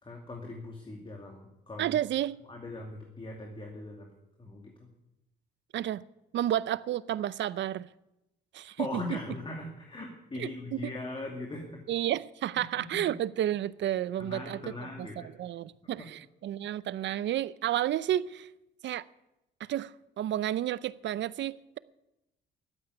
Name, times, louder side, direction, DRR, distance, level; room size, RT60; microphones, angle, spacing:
voice 1, 0.0-2.0 2.5-4.1 4.4-4.9 8.8-11.8 12.9-13.0 14.2-15.3 16.0-16.1, left 2 dB, 25° left, 2.4 m, -40 dB
voice 2, 1.8-2.4 5.7-6.0 6.3-7.9 8.5-9.2 10.4-10.9 11.9-18.5 18.8-19.1 19.6-21.8, right 12 dB, 65° right, 0.6 m, -31 dB
12.5 x 8.9 x 9.6 m
cardioid pair, 90°, 20 cm